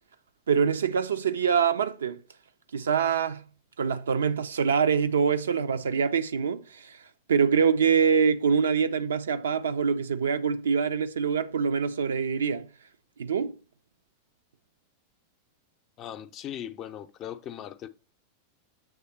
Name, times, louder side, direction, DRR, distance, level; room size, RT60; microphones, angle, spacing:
voice 1, 0.5-2.2 2.7-3.4 3.8-7.0 7.3-12.7 13.2-13.5, right 6 dB, 70° right, 0.5 m, -25 dB
voice 2, 16.0-17.9, left 10 dB, 35° left, 0.6 m, -39 dB
7.9 x 3.4 x 4.2 m
figure-of-eight pair, 90°, 0 cm